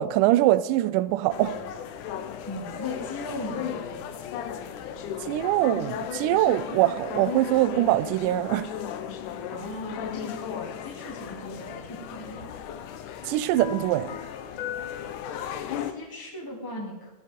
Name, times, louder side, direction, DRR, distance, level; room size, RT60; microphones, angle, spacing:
voice 1, 0.0-1.6 5.3-8.7 13.3-14.2, right 15 dB, 85° right, 2.1 m, -23 dB
sound 1, 1.3-15.9, left 9 dB, 75° left, 2.3 m, -35 dB
voice 2, 2.5-4.1 9.5-12.5 15.8-17.1, left 1 dB, 5° left, 2.1 m, -38 dB
15.0 x 9.8 x 5.1 m
omnidirectional pair, 3.6 m